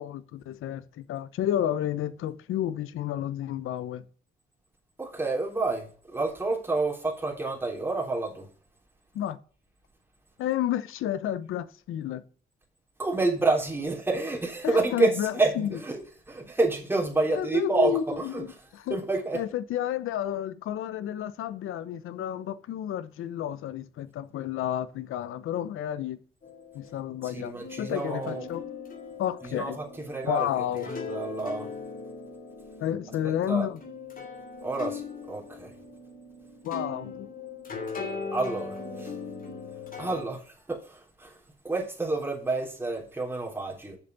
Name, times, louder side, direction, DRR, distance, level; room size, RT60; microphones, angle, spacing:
voice 1, 0.0-4.0 9.1-9.4 10.4-12.2 14.6-15.7 17.3-19.0 19.3-26.2 26.7-28.6 29.2-29.8 30.2-30.9 32.8-33.8 36.6-37.3, left 11 dB, 80° left, 0.9 m, -31 dB
voice 2, 5.0-8.5 13.0-16.0 16.3-18.4 18.9-19.4 27.2-28.5 29.4-30.5 30.7-31.7 33.5-33.7 34.6-35.7 38.3-39.1 40.0-41.4 41.6-44.0, right 2 dB, 10° right, 3.4 m, -29 dB
sound 1, 26.4-40.2, left 4 dB, 45° left, 2.7 m, -40 dB
7.3 x 6.7 x 7.2 m
cardioid pair, 110°, 21 cm